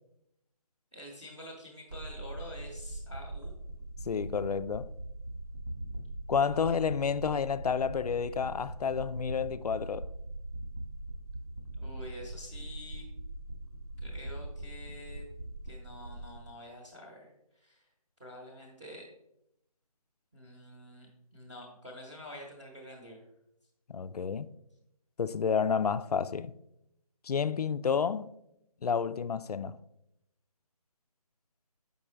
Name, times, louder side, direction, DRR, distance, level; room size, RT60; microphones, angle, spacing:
voice 1, 0.9-3.5 11.8-13.1 14.0-15.3 15.6-17.9 18.2-19.1 20.3-23.2, equal, 10° right, 0.8 m, -47 dB
sound 1, 1.9-16.4, right 1 dB, 80° right, 2.0 m, -41 dB
voice 2, 4.0-4.9 6.3-10.1 23.9-24.5 25.2-26.5 27.2-28.3 28.8-29.8, left 6 dB, 85° left, 0.4 m, -30 dB
7.2 x 5.3 x 3.3 m
figure-of-eight pair, 165°, 19 cm